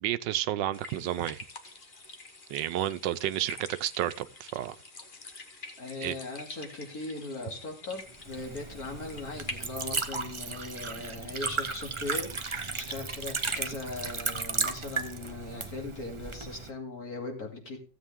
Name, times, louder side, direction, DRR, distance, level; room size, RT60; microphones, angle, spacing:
voice 1, 0.0-1.4 2.5-4.8 6.0-6.2, right 13 dB, 90° right, 1.4 m, -31 dB
sound 1, 0.7-10.0, left 2 dB, 30° left, 1.4 m, -46 dB
voice 2, 5.8-17.8, left 2 dB, 55° left, 3.1 m, -39 dB
Liquid, 8.1-16.7, right 4 dB, 30° right, 0.5 m, -35 dB
15.5 x 8.0 x 3.6 m
omnidirectional pair, 1.9 m